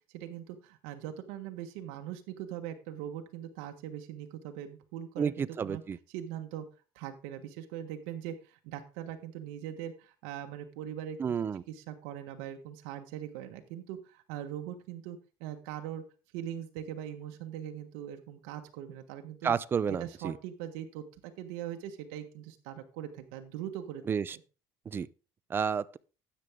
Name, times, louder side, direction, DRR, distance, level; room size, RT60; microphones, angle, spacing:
voice 1, 0.1-5.8 6.1-6.6 6.9-16.0 16.3-19.5 19.9-24.0 24.3-24.4, right 10 dB, 85° right, 1.4 m, -41 dB
voice 2, 5.2-6.0 11.2-11.6 19.4-20.3 24.1-24.4 24.9-25.1 25.5-26.0, right 7 dB, 25° right, 0.5 m, -31 dB
12.5 x 8.6 x 3.6 m
cardioid pair, 130°, 9 cm